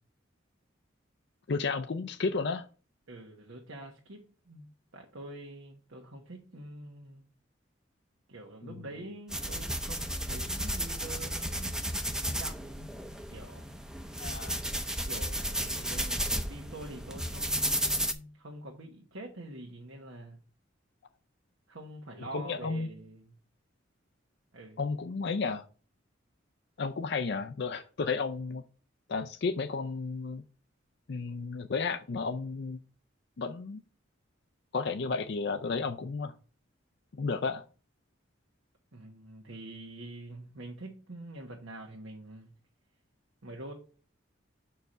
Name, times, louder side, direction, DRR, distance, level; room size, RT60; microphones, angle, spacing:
voice 1, 1.5-2.7 14.2-14.6 22.3-22.9 24.8-25.6 26.8-28.6 29.1-30.4 31.1-32.8 33.4-33.8 34.7-36.3 37.1-37.6, left 4 dB, 60° left, 7 dB, 0.5 m, -32 dB
voice 2, 3.1-4.7 4.9-7.3 8.3-11.8 12.2-12.9 13.3-13.6 15.0-20.4 21.7-23.3 24.5-24.8 38.9-42.5 43.4-43.7, right 1 dB, 90° right, 0 dB, 1.3 m, -45 dB
sound 1, 9.3-18.1, right 1 dB, 5° right, 0.6 m, -33 dB
6.0 x 4.6 x 6.5 m, 0.38 s
head